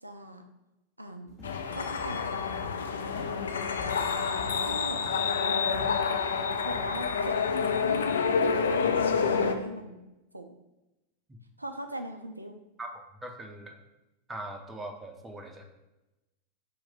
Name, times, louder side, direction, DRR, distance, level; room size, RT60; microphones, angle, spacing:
voice 1, 0.0-0.4 1.0-1.4 1.7-2.6 4.6-5.1 5.5-6.0 6.6-9.1 9.4-10.0 10.3-10.6 11.6-12.6, right 1 dB, 85° right, 6 dB, 0.3 m, -41 dB
sound 1, 1.3-7.8, left 3 dB, 20° left, 1.4 m, -46 dB
sound 2, 1.4-9.5, left 5 dB, 65° left, 0.3 m, -28 dB
voice 2, 13.2-13.8 14.3-15.6, right 1 dB, 15° right, 3 dB, 0.6 m, -40 dB
4.6 x 3.1 x 3.6 m, 0.99 s
figure-of-eight pair, 90°, 0 cm